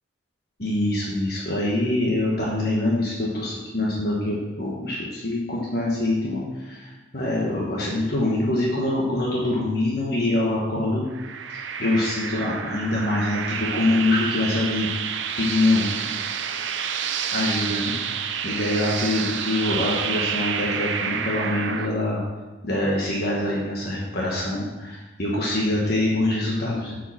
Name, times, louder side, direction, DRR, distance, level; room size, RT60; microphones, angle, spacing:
voice 1, 0.6-11.0 11.5-14.9 15.4-15.9 17.3-17.9 18.4-22.2 22.6-27.0, left 1 dB, 55° left, -4 dB, 1.3 m, -24 dB
sound 1, 11.1-21.9, right 7 dB, 75° right, 0.6 m, -29 dB
7.7 x 5.1 x 6.0 m, 1.2 s
head